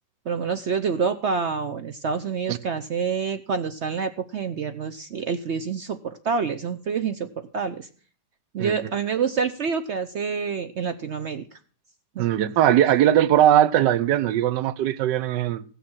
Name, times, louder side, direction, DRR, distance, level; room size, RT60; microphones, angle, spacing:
voice 1, 0.3-7.9 8.5-11.6 12.1-12.3, right 5 dB, 60° right, 0.7 m, -27 dB
voice 2, 12.2-15.6, right 11 dB, 75° right, 1.4 m, -20 dB
16.0 x 6.7 x 6.2 m
omnidirectional pair, 1.9 m